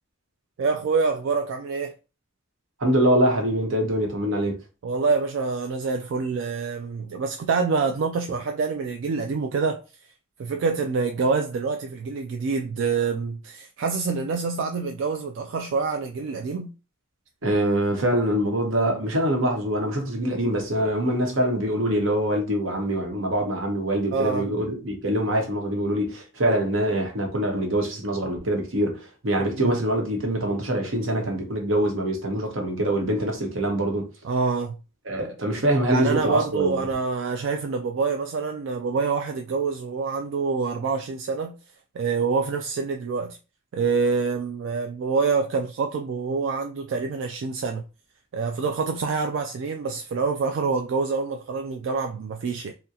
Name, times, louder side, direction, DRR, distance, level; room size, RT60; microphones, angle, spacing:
voice 1, 0.6-1.9 4.8-9.8 10.4-16.7 24.1-24.5 29.4-29.8 34.2-34.8 35.9-41.6 41.9-43.4 43.7-47.8 48.3-52.7, right 4 dB, 65° right, 0.3 m, -26 dB
voice 2, 2.8-4.6 17.4-34.1 35.1-36.8, right 1 dB, 90° right, 1.0 m, -24 dB
3.7 x 2.1 x 2.8 m
head